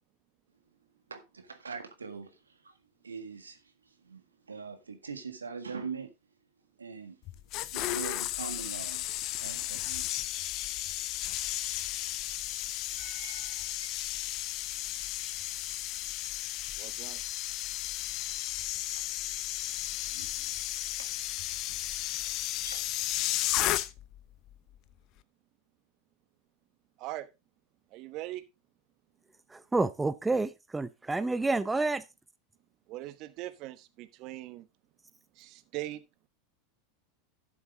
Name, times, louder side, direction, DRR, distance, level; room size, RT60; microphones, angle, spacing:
voice 1, 1.1-2.8 3.0-6.1 6.8-7.2 7.5-9.1 9.3-10.1 11.7-11.8 13.2-13.5 13.8-14.1 16.8-16.9 18.9-19.0 20.1-20.5 21.0-21.1 22.6-22.8, right 5 dB, 90° right, 1.7 m, -43 dB
sound 1, 7.3-24.2 24.5-24.8, left 14 dB, 50° left, 0.8 m, -34 dB
voice 2, 13.0-13.7 16.8-17.2 27.0-27.3 27.9-28.4 32.9-34.6 35.4-36.0, right 15 dB, 50° right, 1.1 m, -41 dB
voice 3, 29.5-32.0, right 3 dB, 10° right, 0.6 m, -29 dB
12.0 x 7.2 x 3.7 m
hypercardioid pair, 90°, 0 cm